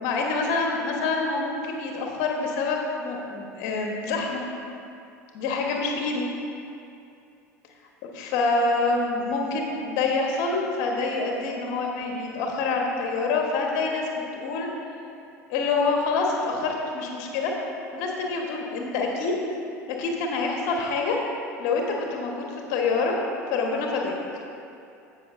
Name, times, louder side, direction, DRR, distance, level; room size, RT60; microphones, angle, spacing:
voice 1, 0.0-4.4 5.3-6.2 8.0-14.7 15.5-17.5 17.9-19.4 19.9-21.2 21.6-23.2 23.5-24.1, left 3 dB, 50° left, 1 dB, 1.3 m, -26 dB
16.0 x 5.9 x 2.6 m, 2.6 s
figure-of-eight pair, 75°, 9 cm